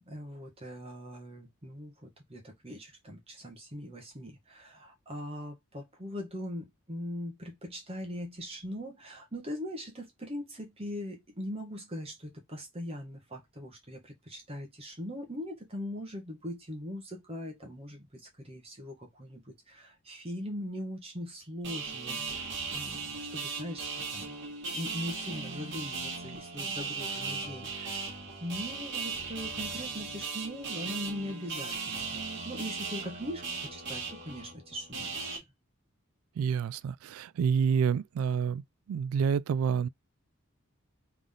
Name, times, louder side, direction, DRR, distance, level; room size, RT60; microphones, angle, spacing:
voice 1, 0.1-32.2 32.4-35.4, equal, 30° right, 1.5 m, -41 dB
sound 1, 21.6-35.4, right 4 dB, 55° right, 2.1 m, -37 dB
voice 2, 36.4-38.6 38.9-39.9, right 7 dB, 85° right, 0.3 m, -28 dB
3.7 x 3.6 x 3.7 m
head